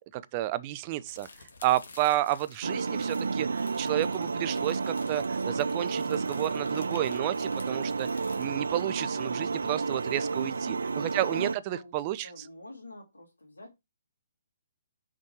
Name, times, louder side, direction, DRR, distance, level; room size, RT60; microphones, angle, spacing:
voice 1, 0.1-1.3 1.6-8.1 8.4-12.3, right 14 dB, 35° right, 0.6 m, -31 dB
sound 1, 1.0-8.5, left 3 dB, 70° left, 1.9 m, -52 dB
sound 2, 2.6-11.6, right 4 dB, 80° right, 0.3 m, -31 dB
voice 2, 10.4-13.8, left 2 dB, 90° left, 2.6 m, -48 dB
6.0 x 4.5 x 4.6 m
hypercardioid pair, 135°, 0 cm